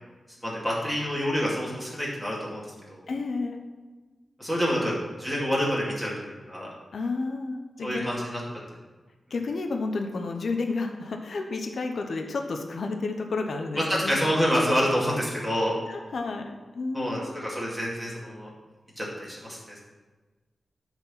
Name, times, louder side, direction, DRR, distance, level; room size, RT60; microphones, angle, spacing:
voice 1, 0.4-3.1 4.4-6.7 7.8-8.4 13.9-15.7 16.9-18.5 19.0-19.6, equal, ahead, -6 dB, 2.5 m, -27 dB
voice 2, 3.1-3.6 6.9-8.0 9.3-14.2 15.9-17.4, left 3 dB, 65° left, 3 dB, 0.9 m, -31 dB
12.0 x 4.5 x 5.7 m, 1.3 s
wide cardioid pair, 155°, 0 cm